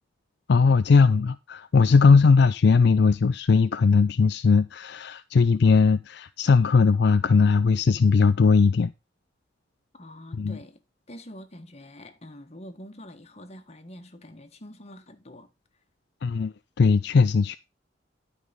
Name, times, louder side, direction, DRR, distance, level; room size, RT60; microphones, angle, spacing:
voice 1, 0.5-8.9 10.4-10.6 16.2-17.6, left 4 dB, 65° left, 0.4 m, -19 dB
voice 2, 9.9-10.8 11.1-15.5, left 1 dB, 35° left, 1.4 m, -45 dB
11.5 x 4.9 x 5.3 m
head